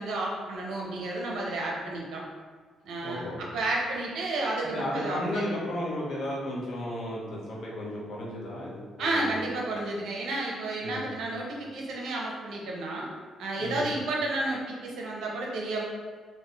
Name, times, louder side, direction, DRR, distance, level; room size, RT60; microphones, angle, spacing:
voice 1, 0.0-2.2 2.8-5.5 9.0-13.1 13.4-15.9, right 2 dB, 80° right, -2 dB, 0.9 m, -31 dB
voice 2, 3.0-3.4 4.6-9.4 10.8-11.1 13.6-13.8, left 1 dB, 65° left, -4 dB, 1.1 m, -34 dB
4.2 x 2.6 x 3.4 m, 1.5 s
cardioid pair, 90°, 0 cm